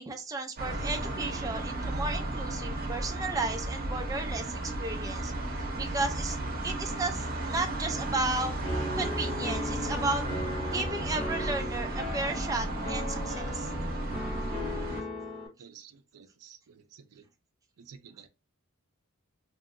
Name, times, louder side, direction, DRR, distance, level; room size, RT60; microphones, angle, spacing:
voice 1, 0.0-5.3 5.8-6.4 6.6-8.5 8.9-10.2 10.6-13.7, right 3 dB, 15° right, 0.4 m, -34 dB
sound 1, 0.6-15.0, right 1 dB, 45° right, 0.7 m, -34 dB
Piano, 8.6-15.5, left 1 dB, 25° left, 1.2 m, -37 dB
voice 2, 15.6-17.3 17.8-18.3, right 7 dB, 80° right, 0.4 m, -52 dB
2.9 x 2.7 x 2.5 m
head